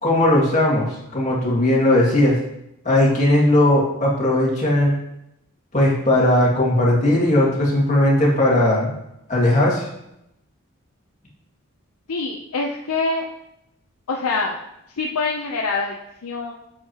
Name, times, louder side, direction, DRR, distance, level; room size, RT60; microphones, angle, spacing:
voice 1, 0.0-2.3 2.8-4.9 5.7-8.9 9.3-9.9, left 1 dB, 35° left, -5 dB, 2.2 m, -18 dB
voice 2, 12.1-13.3 14.1-14.6 15.0-16.5, left 3 dB, 80° left, 0 dB, 0.7 m, -25 dB
8.5 x 7.3 x 3.0 m, 0.83 s
head